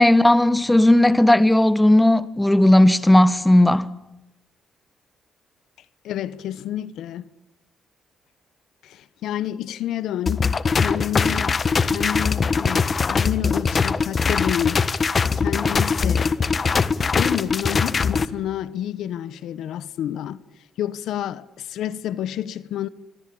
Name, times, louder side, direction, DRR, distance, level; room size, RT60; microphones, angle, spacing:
voice 1, 0.0-3.9, left 1 dB, 10° left, 1.4 m, -15 dB
voice 2, 6.0-7.3 8.8-11.6 11.8-14.8 15.4-16.4 17.1-20.4 20.8-22.9, left 11 dB, 80° left, 1.2 m, -29 dB
sound 1, 10.3-18.3, left 5 dB, 35° left, 1.5 m, -21 dB
26.5 x 25.0 x 8.8 m
cardioid pair, 90°, 0 cm